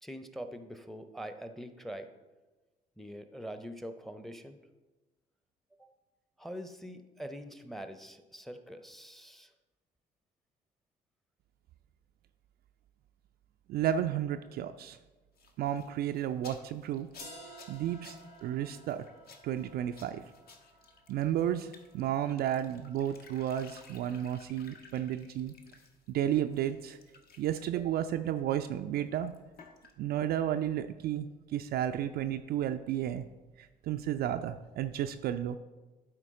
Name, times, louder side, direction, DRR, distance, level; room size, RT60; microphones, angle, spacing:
voice 1, 0.0-2.1 3.0-4.6 5.8-5.9 6.4-9.5, equal, ahead, 9 dB, 0.7 m, -44 dB
voice 2, 13.7-15.0 15.6-17.1 17.7-18.2 18.4-19.0 19.4-20.2 21.1-25.5 26.1-27.0 27.4-29.3 30.0-33.2 33.6-35.6, right 11 dB, 50° right, 8 dB, 0.4 m, -32 dB
sound 1, 15.4-26.1 26.4-27.8 29.0-29.9, left 4 dB, 50° left, 1.1 m, -57 dB
sound 2, 17.2-23.1, equal, 80° left, 1.5 m, -54 dB
12.0 x 4.6 x 3.7 m, 1.2 s
figure-of-eight pair, 50°, 21 cm